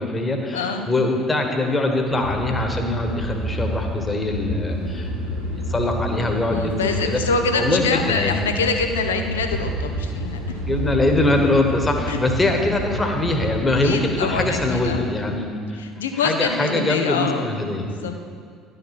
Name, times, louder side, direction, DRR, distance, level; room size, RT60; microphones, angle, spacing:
voice 1, 0.0-5.1 5.5-7.2 7.5-8.3 10.7-15.5 16.2-17.8, left 2 dB, 20° left, 3 dB, 1.3 m, -22 dB
voice 2, 0.5-0.9 6.5-10.4 12.1-12.2 13.8-15.0 15.7-18.1, left 4 dB, 75° left, 5 dB, 0.7 m, -25 dB
sound 1, 2.1-14.8, equal, 80° right, 1.4 m, -29 dB
11.0 x 5.6 x 6.0 m, 2.2 s
figure-of-eight pair, 60°, 0 cm